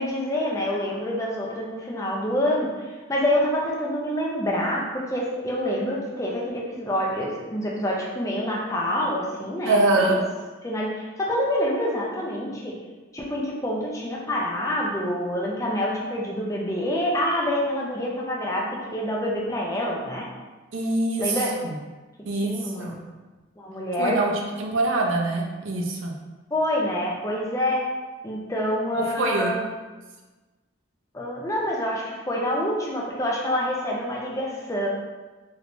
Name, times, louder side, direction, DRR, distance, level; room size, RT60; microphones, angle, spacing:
voice 1, 0.0-10.2 10.6-12.7 13.1-20.3 21.2-21.5 22.3-23.1 23.6-24.2 26.5-27.8 28.2-29.7 31.1-34.9, equal, 15° left, -3 dB, 0.5 m, -27 dB
voice 2, 9.6-10.2 20.7-21.7 22.3-23.0 24.0-24.3 24.6-26.1 28.9-29.7, right 2 dB, 85° right, 0 dB, 0.5 m, -24 dB
3.2 x 3.2 x 2.5 m, 1.2 s
head